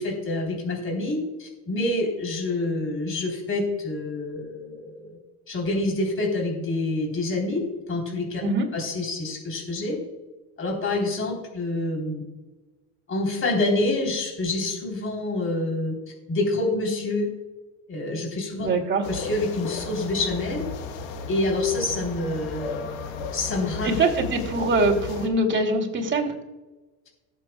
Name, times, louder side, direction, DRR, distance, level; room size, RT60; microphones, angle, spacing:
voice 1, 0.0-5.2 5.5-7.6 7.9-8.4 8.7-10.0 10.6-12.2 13.1-16.0 16.3-17.3 17.9-18.7 19.1-20.6 21.3-22.9 23.3-23.9, left 2 dB, 35° left, 0 dB, 3.5 m, -27 dB
voice 2, 18.6-19.0 23.8-26.3, right 2 dB, 30° right, 1 dB, 2.4 m, -23 dB
sound 1, 19.0-25.3, left 4 dB, 85° left, 1.2 m, -35 dB
19.0 x 7.5 x 2.3 m, 1.2 s
supercardioid pair, 100°, 38 cm